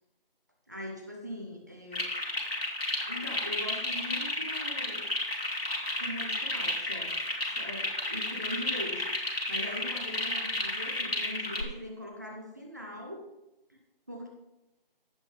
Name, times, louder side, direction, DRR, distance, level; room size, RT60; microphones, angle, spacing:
voice 1, 0.7-2.0 3.1-5.1 6.0-7.2 7.4-9.0 9.5-13.3 13.7-13.8 14.1-14.3, left 1 dB, 20° right, 0 dB, 1.0 m, -41 dB
sound 1, 1.9-11.6, left 1 dB, 85° left, 3.0 m, -32 dB
16.0 x 5.9 x 3.4 m, 0.94 s
figure-of-eight pair, 170°, 29 cm